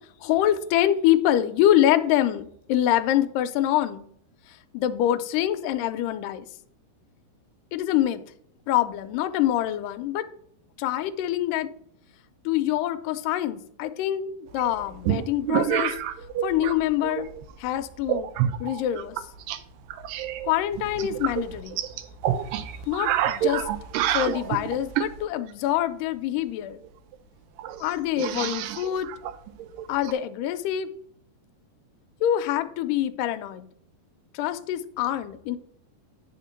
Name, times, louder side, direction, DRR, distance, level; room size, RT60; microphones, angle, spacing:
voice 1, 0.2-4.1 4.7-6.5 7.7-8.2 8.7-10.3 10.8-11.7 12.5-15.9 16.4-17.3 17.6-18.3 18.6-19.2 20.4-21.8 22.9-23.7 24.1-26.8 27.8-29.1 29.9-30.9 32.2-33.7 34.3-35.6, left 12 dB, 80° left, 9 dB, 2.1 m, -25 dB
sound 1, 14.6-16.8 17.0-17.5 18.1-19.6 19.9-25.2 26.8-26.9 27.1-27.2 27.6-30.1, right 11 dB, 80° right, 2.2 m, -28 dB
9.3 x 3.7 x 5.7 m, 0.66 s
omnidirectional pair, 4.0 m